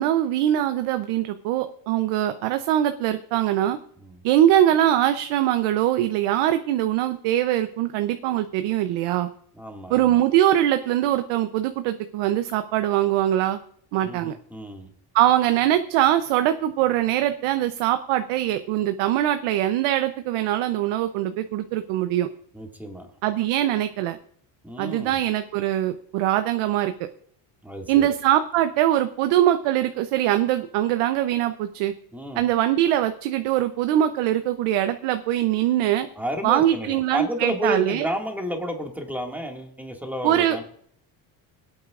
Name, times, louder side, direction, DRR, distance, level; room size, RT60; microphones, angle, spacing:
voice 1, 0.0-3.8 4.2-9.3 9.9-13.6 13.9-14.3 15.1-22.3 23.2-24.2 24.8-26.9 27.9-31.9 32.4-36.1 36.4-38.1 40.2-40.6, right 12 dB, 90° right, 9 dB, 0.8 m, -22 dB
voice 2, 9.5-10.2 14.0-14.9 22.5-23.1 24.6-25.2 27.6-28.1 32.1-32.4 36.1-40.6, equal, 5° right, 2 dB, 2.0 m, -31 dB
25.0 x 8.7 x 2.5 m, 0.63 s
cardioid pair, 120°, 50 cm